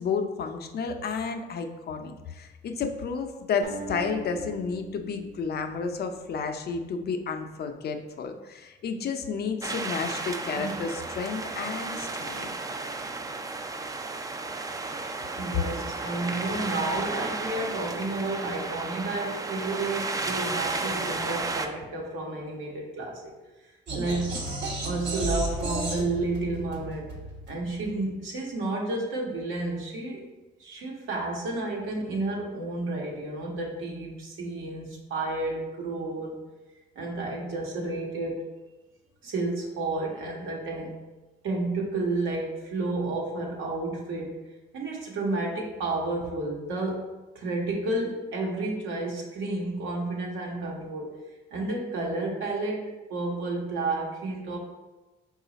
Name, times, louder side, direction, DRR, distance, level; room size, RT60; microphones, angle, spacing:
voice 1, 0.0-12.6, left 5 dB, 55° left, 6 dB, 0.5 m, -31 dB
sound 1, 3.6-6.8, right 4 dB, 35° right, 0.7 m, -42 dB
sound 2, 9.6-21.7, right 3 dB, 20° right, 0.3 m, -33 dB
voice 2, 15.3-23.3 23.9-24.4 24.8-27.1 27.5-30.2 30.6-36.4 36.9-38.4 39.2-40.9 41.4-44.4 44.7-47.1 47.3-51.1 51.5-52.8 53.1-54.6, right 2 dB, 80° right, -2 dB, 1.0 m, -31 dB
sound 3, 23.9-28.0, right 2 dB, 60° right, 1.1 m, -33 dB
4.8 x 2.4 x 3.9 m, 1.1 s
cardioid pair, 90°, 20 cm